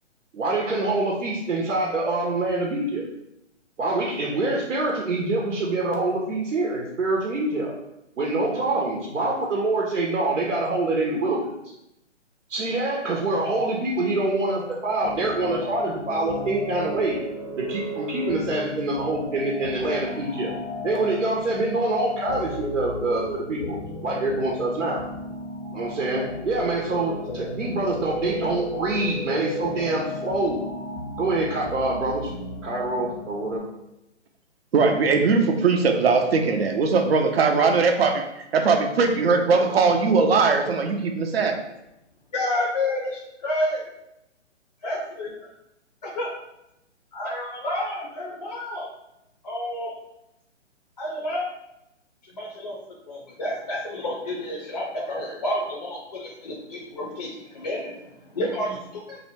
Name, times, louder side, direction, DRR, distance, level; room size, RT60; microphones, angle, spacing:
voice 1, 0.3-3.1 3.8-7.7 8.2-11.5 12.5-17.2 17.6-20.5 20.8-23.8 24.0-25.0 25.7-30.6 31.2-32.3 32.6-33.6, right 2 dB, 85° right, -2 dB, 0.8 m, -25 dB
sound 1, 15.0-33.6, left 1 dB, 85° left, 0.9 m, -34 dB
voice 2, 34.7-41.6, right 4 dB, 55° right, 4 dB, 0.6 m, -20 dB
voice 3, 42.3-43.8 44.8-45.3 46.2-46.3 47.1-48.9 49.4-49.9 51.0-51.5 52.3-52.8 53.1-59.2, left 1 dB, 35° left, -3 dB, 0.5 m, -29 dB
2.7 x 2.1 x 4.0 m, 0.86 s
hypercardioid pair, 150°, 37 cm